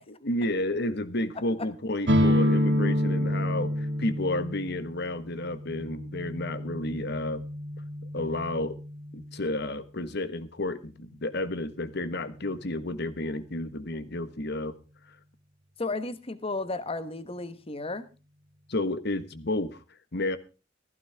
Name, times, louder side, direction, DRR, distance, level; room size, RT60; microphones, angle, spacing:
voice 1, 0.1-7.5 8.1-8.8 9.1-14.8 18.7-19.8 20.1-20.4, left 1 dB, 60° left, 1.4 m, -31 dB
sound 1, 2.1-9.7, equal, 65° right, 2.1 m, -28 dB
voice 2, 15.8-18.1, left 3 dB, 30° left, 1.2 m, -33 dB
15.5 x 14.5 x 3.5 m
head